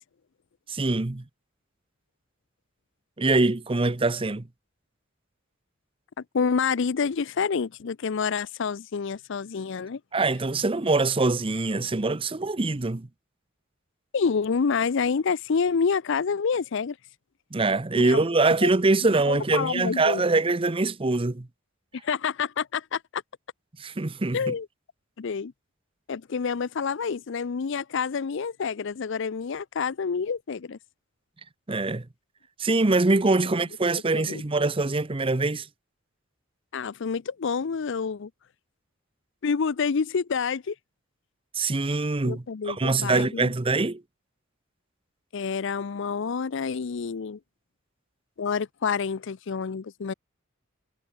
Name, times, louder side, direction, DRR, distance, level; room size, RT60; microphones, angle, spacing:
voice 1, 0.7-1.2 3.2-4.5 10.1-13.1 17.5-21.5 23.8-24.5 31.7-32.0 32.6-35.7 41.5-44.0, right 3 dB, 25° right, 0.7 m, -24 dB
voice 2, 6.3-10.0 14.1-17.0 18.0-18.2 19.3-20.2 22.0-23.2 24.3-24.7 25.2-25.5 26.1-30.8 34.1-34.4 36.7-38.3 39.4-40.7 42.2-43.5 45.3-47.4 48.4-50.1, left 5 dB, 65° left, 0.5 m, -28 dB
head